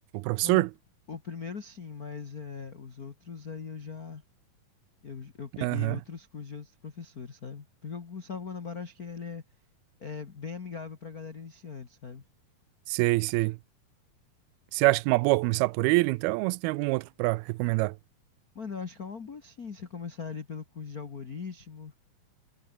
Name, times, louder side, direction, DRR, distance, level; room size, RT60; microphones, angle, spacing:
voice 1, 0.1-0.7 5.6-6.0 12.9-13.6 14.7-18.0, right 23 dB, 85° right, 2.4 m, -25 dB
voice 2, 1.1-4.2 5.0-9.4 10.0-12.2 18.5-21.9, left 5 dB, 60° left, 0.9 m, -40 dB
omnidirectional pair, 4.4 m